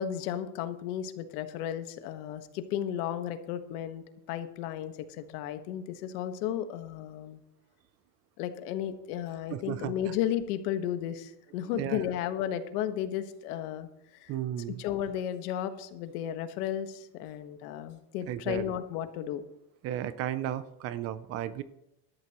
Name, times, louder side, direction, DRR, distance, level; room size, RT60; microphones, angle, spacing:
voice 1, 0.0-7.4 8.4-13.9 14.2-14.3 14.8-19.4, left 10 dB, 90° left, 9 dB, 1.5 m, -34 dB
voice 2, 9.5-9.9 11.7-12.0 14.3-14.8 18.3-18.7 19.8-21.6, right 11 dB, 35° right, 15 dB, 0.4 m, -34 dB
17.5 x 12.5 x 3.0 m, 0.85 s
cardioid pair, 170°, 45 cm